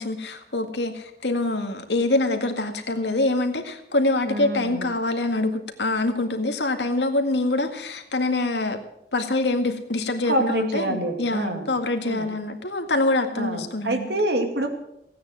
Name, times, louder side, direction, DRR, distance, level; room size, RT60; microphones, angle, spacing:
voice 1, 0.0-8.8 9.1-14.1, left 2 dB, 80° left, 6 dB, 2.0 m, -25 dB
voice 2, 4.3-4.8 10.3-11.7 12.0-12.3 13.4-14.7, right 1 dB, 70° right, 5 dB, 2.3 m, -26 dB
16.5 x 9.5 x 7.6 m, 0.79 s
head